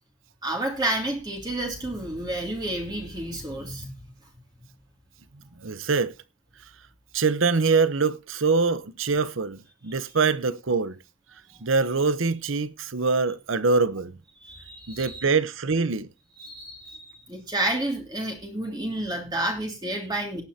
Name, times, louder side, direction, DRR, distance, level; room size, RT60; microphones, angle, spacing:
voice 1, 0.4-3.9 14.4-15.2 16.4-20.4, right 1 dB, 20° right, 2.6 m, -30 dB
voice 2, 5.6-6.1 7.1-11.0 11.6-14.2 14.9-16.1, right 4 dB, 70° right, 0.8 m, -24 dB
18.0 x 9.2 x 2.8 m
head